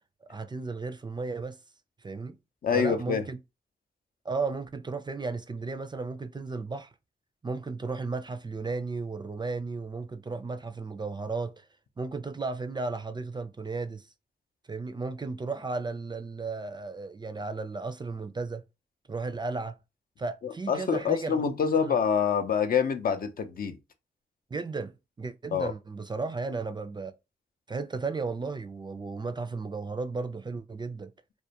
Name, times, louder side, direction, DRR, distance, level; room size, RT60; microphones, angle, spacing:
voice 1, 0.2-1.6 2.0-2.4 2.7-3.4 4.2-6.9 7.4-11.7 12.0-14.1 14.7-18.7 19.1-19.8 20.2-22.0 24.5-27.1 27.7-31.1, right 3 dB, 25° right, 0.4 m, -34 dB
voice 2, 2.6-3.2 20.4-23.8 25.5-25.7, left 6 dB, 55° left, 0.5 m, -26 dB
2.3 x 2.1 x 2.8 m
supercardioid pair, 45°, 18 cm